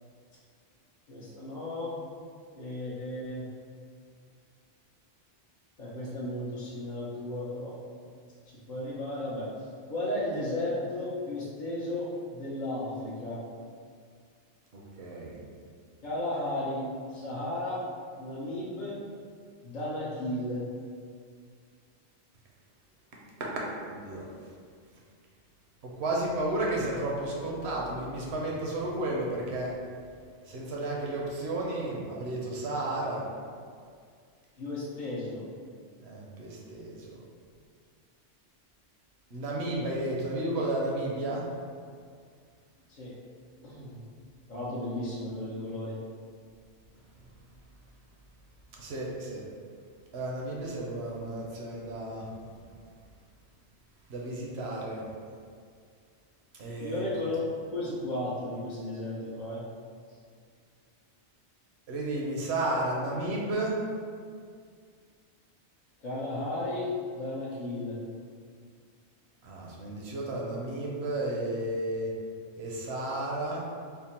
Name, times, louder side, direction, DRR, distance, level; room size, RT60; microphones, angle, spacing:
voice 1, 1.1-2.0 2.5-3.4 5.8-7.7 8.7-13.4 16.0-16.8 17.1-17.8 18.2-19.0 19.6-20.6 34.6-35.4 42.9-43.1 43.6-44.0 44.5-46.0 56.8-57.4 57.7-59.6 66.0-68.0, left 1 dB, 50° left, -9 dB, 0.7 m, -34 dB
voice 2, 14.7-15.4 23.6-24.2 26.0-29.7 30.5-33.2 36.0-37.1 39.3-41.4 48.8-49.4 50.1-52.2 54.1-55.0 56.6-57.0 61.9-63.8 69.4-72.1 72.6-73.6, right 1 dB, 70° right, -3 dB, 1.0 m, -32 dB
3.6 x 2.1 x 4.2 m, 2.1 s
omnidirectional pair, 1.2 m